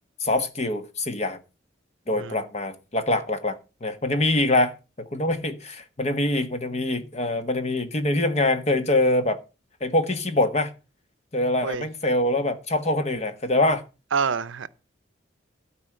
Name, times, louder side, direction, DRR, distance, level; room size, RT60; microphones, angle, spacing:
voice 1, 0.2-1.4 2.1-9.4 9.8-10.7 11.3-13.8, left 2 dB, 35° left, 1.3 m, -24 dB
voice 2, 14.1-14.7, right 5 dB, 85° right, 0.7 m, -27 dB
13.0 x 4.7 x 7.6 m
head